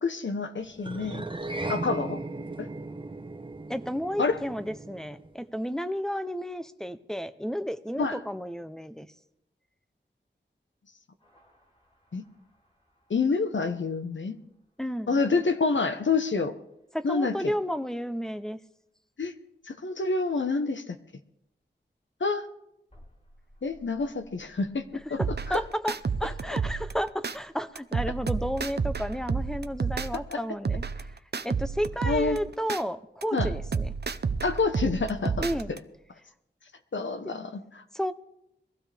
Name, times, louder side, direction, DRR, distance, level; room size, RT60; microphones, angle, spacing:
voice 1, 0.0-1.2 1.7-2.2 2.6-2.7 4.2-4.4 8.0-8.2 12.1-12.2 13.1-14.4 15.1-16.6 17.0-17.5 19.2-19.3 19.6-21.0 22.2-22.5 23.6-25.6 30.3-30.4 32.0-32.4 33.3-33.5 34.4-35.8 36.9-37.8, left 4 dB, 80° left, 9 dB, 1.0 m, -28 dB
sound 1, 0.8-5.4, right 2 dB, 25° right, 1.1 m, -37 dB
voice 2, 3.7-9.1 14.8-15.2 16.9-18.6 25.2-25.9 26.2-30.8 31.4-33.9 35.4-35.7 37.9-38.1, equal, 5° left, 12 dB, 0.7 m, -32 dB
sound 2, 11.2-13.8 16.3-16.4 22.9-29.8, equal, 30° left, 4.8 m, -50 dB
sound 3, 25.2-27.4 27.8-30.3 30.6-32.8 33.2-35.8, right 5 dB, 60° right, 0.7 m, -31 dB
22.0 x 15.5 x 3.4 m, 0.82 s
wide cardioid pair, 75°, 19 cm